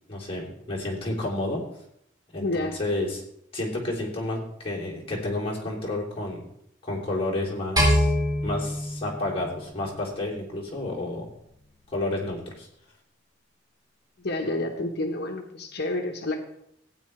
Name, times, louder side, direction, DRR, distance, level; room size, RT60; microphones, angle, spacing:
voice 1, 0.1-1.6 2.3-3.2 3.5-6.4 6.8-8.1 8.4-11.3 11.9-12.7, left 2 dB, 30° left, -3 dB, 3.1 m, -30 dB
voice 2, 2.4-2.8 14.2-16.4, left 2 dB, 60° left, 3 dB, 1.2 m, -29 dB
sound 1, 7.8-10.1, equal, 20° right, 4.5 m, -24 dB
15.5 x 9.7 x 3.3 m, 0.74 s
head